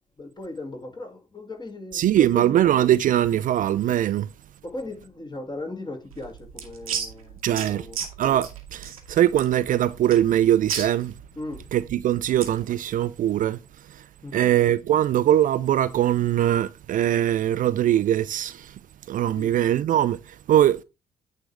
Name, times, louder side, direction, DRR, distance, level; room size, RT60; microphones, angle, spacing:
voice 1, 0.2-2.5 4.6-8.0 11.4-11.6 14.2-14.5 19.4-19.5, left 2 dB, 25° left, 2.2 m, -37 dB
voice 2, 1.9-4.3 7.4-7.9 8.2-11.1 11.7-13.6 13.9-14.0 14.3-18.8 19.1-20.8, right 12 dB, 50° right, 0.4 m, -21 dB
sound 1, 6.1-12.6, right 7 dB, 85° right, 0.9 m, -35 dB
9.0 x 3.3 x 4.8 m
figure-of-eight pair, 40°, 18 cm